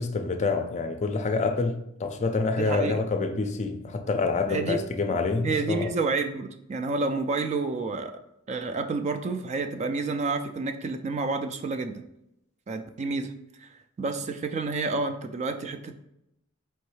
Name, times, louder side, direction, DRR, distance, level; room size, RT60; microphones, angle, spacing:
voice 1, 0.0-5.9, left 3 dB, 35° left, 0.4 m, -27 dB
voice 2, 2.5-3.0 4.5-4.8 5.4-8.2 8.5-12.0 12.7-13.3 13.6-13.7 14.0-16.0, right 3 dB, 35° right, 0.3 m, -29 dB
4.5 x 3.1 x 3.1 m
head